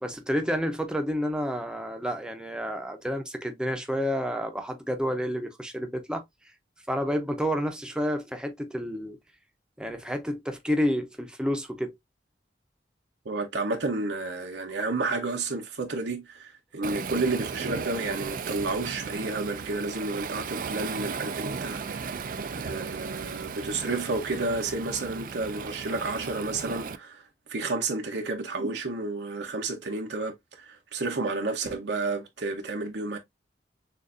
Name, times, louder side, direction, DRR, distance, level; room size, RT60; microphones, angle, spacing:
voice 1, 0.0-6.2 6.9-9.2 9.8-12.0, equal, 5° right, 0.7 m, -29 dB
voice 2, 13.2-27.2 27.5-33.2, right 3 dB, 75° right, 0.8 m, -31 dB
Waves surf, 16.8-27.0, right 5 dB, 50° right, 0.4 m, -35 dB
6.5 x 2.6 x 2.5 m
head